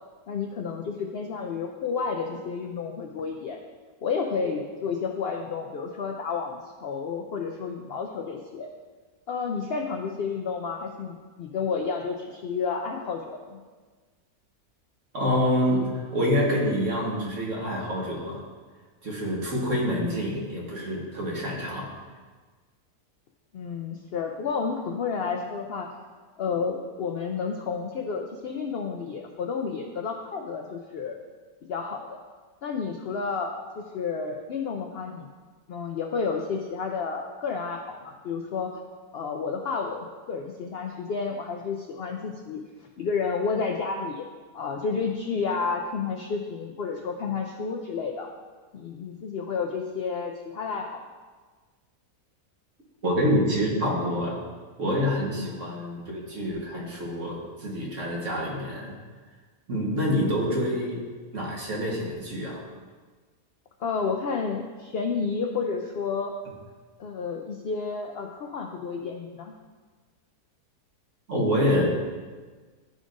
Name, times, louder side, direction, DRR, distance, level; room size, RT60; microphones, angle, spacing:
voice 1, 0.3-3.6 4.0-8.7 9.3-13.6 23.5-25.9 26.4-31.2 31.7-32.2 32.6-35.3 35.7-38.7 39.1-42.7 43.0-44.2 44.5-48.3 48.7-51.0 55.3-55.6 60.0-60.3 63.8-66.3 67.0-69.5, left 5 dB, 70° left, 3 dB, 0.5 m, -31 dB
voice 2, 15.1-18.4 19.0-22.0 53.0-54.4 54.8-58.9 59.7-61.0 61.3-62.6 71.3-71.8, equal, 55° right, -3 dB, 1.7 m, -27 dB
11.5 x 5.1 x 2.5 m, 1.4 s
omnidirectional pair, 1.6 m